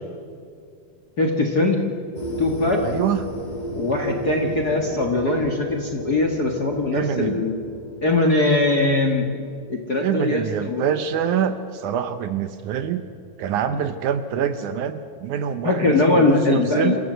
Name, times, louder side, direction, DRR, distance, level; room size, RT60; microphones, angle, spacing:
voice 1, 1.2-1.8 2.4-2.8 3.7-7.5 8.0-9.3 9.7-10.8 15.6-17.0, left 2 dB, 40° left, 3 dB, 1.6 m, -21 dB
sound 1, 2.2-9.3, left 1 dB, 15° left, 2.6 m, -33 dB
voice 2, 2.8-3.3 6.9-7.4 10.0-13.0 13.4-17.0, right 8 dB, 70° right, 10 dB, 2.1 m, -25 dB
27.0 x 16.0 x 7.9 m, 2.3 s
omnidirectional pair, 4.0 m